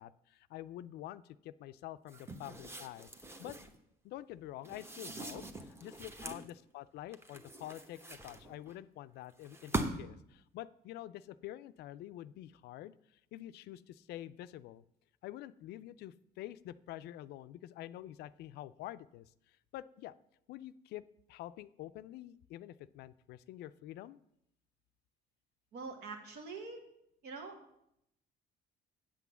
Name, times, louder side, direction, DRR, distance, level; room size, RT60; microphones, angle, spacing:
voice 1, 0.0-3.6 4.0-14.8 15.2-20.1 20.5-21.0 21.3-24.2, left 14 dB, 75° left, 15 dB, 0.4 m, -47 dB
Book grab open and close hard, 2.1-3.8 4.6-6.5 7.1-8.7 9.4-10.2, right 2 dB, 15° right, 0.9 m, -42 dB
voice 2, 25.7-26.8 27.2-27.6, right 4 dB, 75° right, 3 dB, 1.9 m, -45 dB
8.2 x 6.1 x 7.0 m, 0.78 s
cardioid pair, 110°, 17 cm